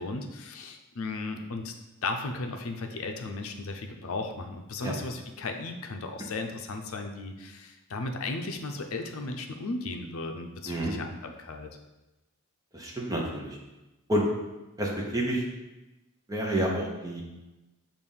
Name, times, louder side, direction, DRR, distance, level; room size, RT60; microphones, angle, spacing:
voice 1, 0.0-1.7 2.0-11.7, left 3 dB, 75° left, 4 dB, 0.6 m, -35 dB
voice 2, 12.7-13.6 14.1-14.2 14.8-15.4 16.3-17.2, right 1 dB, 15° right, -2 dB, 0.9 m, -29 dB
6.7 x 2.6 x 5.5 m, 1.1 s
head